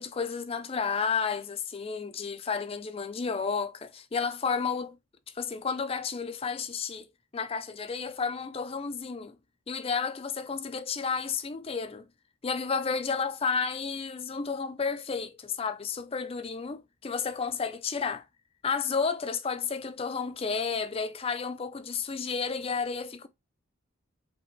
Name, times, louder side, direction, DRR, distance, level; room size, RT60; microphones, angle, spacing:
voice 1, 0.0-5.0 5.3-7.1 7.3-9.4 9.7-12.1 12.4-18.2 18.6-23.3, left 5 dB, 25° left, 0.4 m, -31 dB
5.0 x 3.1 x 3.1 m
head